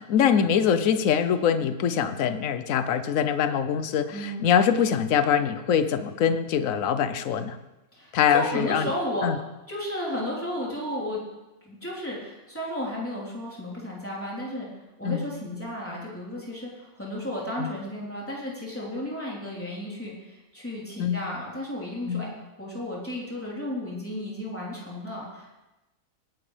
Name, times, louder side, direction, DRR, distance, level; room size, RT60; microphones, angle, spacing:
voice 1, 0.0-7.6 8.1-8.9 9.2-9.4 15.0-15.2 17.6-17.7 21.0-21.2 22.1-22.2, left 8 dB, 70° left, 11 dB, 1.1 m, -23 dB
voice 2, 4.1-4.5 7.9-9.3 9.7-11.2 11.6-14.7 15.0-25.6, left 1 dB, 10° left, -5 dB, 3.7 m, -33 dB
19.0 x 11.0 x 3.4 m, 1.0 s
omnidirectional pair, 1.5 m